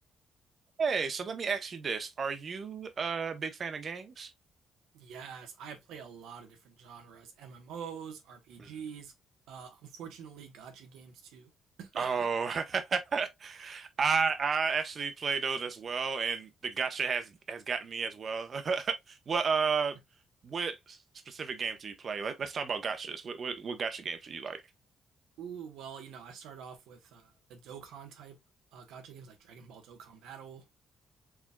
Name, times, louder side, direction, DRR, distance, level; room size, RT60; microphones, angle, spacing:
voice 1, 0.8-4.3 8.6-8.7 12.0-20.0 20.4-21.0 21.3-24.6, right 5 dB, 45° right, 0.9 m, -32 dB
voice 2, 4.9-9.1 9.5-11.5 11.8-12.2 25.4-28.4 28.7-30.6, right 7 dB, 90° right, 1.1 m, -46 dB
4.9 x 3.5 x 2.3 m
cardioid pair, 90°, 0 cm